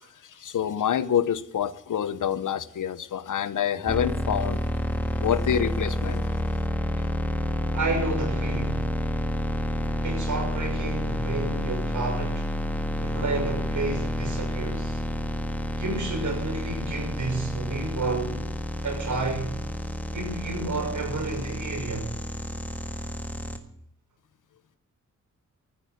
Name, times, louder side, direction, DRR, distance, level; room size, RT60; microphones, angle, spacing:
voice 1, 0.2-4.6 5.2-6.2, left 9 dB, 85° left, 1.0 m, -27 dB
sound 1, 3.9-23.6, left 1 dB, 5° left, 1.7 m, -29 dB
voice 2, 7.7-8.9 10.0-12.5 13.0-15.0 15.7-18.4 18.8-19.6 20.1-22.1, right 3 dB, 75° right, 6.3 m, -31 dB
15.0 x 9.0 x 9.6 m
wide cardioid pair, 120°, 30 cm